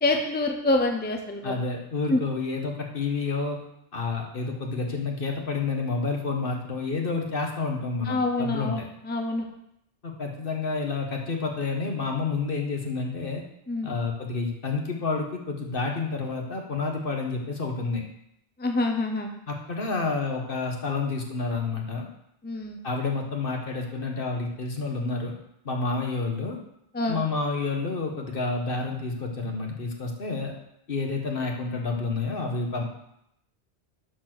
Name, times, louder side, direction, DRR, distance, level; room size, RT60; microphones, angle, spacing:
voice 1, 0.0-1.5 2.1-2.2 8.1-9.4 13.7-13.9 18.6-19.3 22.4-22.8 26.9-27.2, left 2 dB, 10° left, 3 dB, 0.8 m, -26 dB
voice 2, 1.4-3.6 3.9-8.9 10.0-13.4 13.8-18.0 19.5-22.1 22.8-25.3 25.6-26.6 27.1-30.5 30.9-32.8, left 4 dB, 55° left, 1 dB, 1.5 m, -29 dB
11.0 x 4.3 x 6.1 m, 0.77 s
omnidirectional pair, 1.1 m